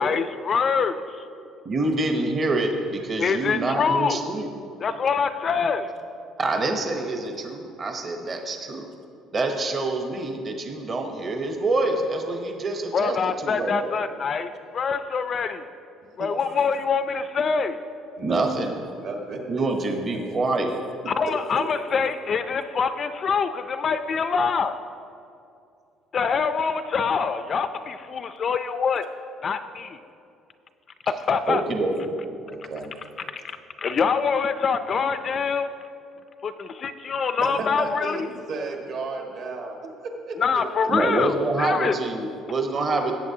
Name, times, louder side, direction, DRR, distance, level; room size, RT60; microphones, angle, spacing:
voice 1, 0.0-1.2 3.2-4.2 4.8-5.9 12.9-15.6 16.2-17.8 21.1-24.8 26.1-29.0 29.4-30.0 31.0-31.6 33.3-33.4 33.8-35.7 36.4-38.3 40.4-41.9, left 5 dB, 30° left, 10 dB, 0.3 m, -25 dB
voice 2, 1.4-4.5 6.4-8.9 9.3-13.2 13.4-13.9 18.2-18.7 19.5-20.8 31.5-32.1 40.9-43.1, right 2 dB, 30° right, 3 dB, 0.8 m, -26 dB
voice 3, 16.2-16.7 18.2-20.2 32.5-32.9 37.5-40.4, right 3 dB, 55° right, 1 dB, 1.4 m, -34 dB
17.5 x 8.2 x 2.7 m, 2.5 s
cardioid pair, 175°, 0 cm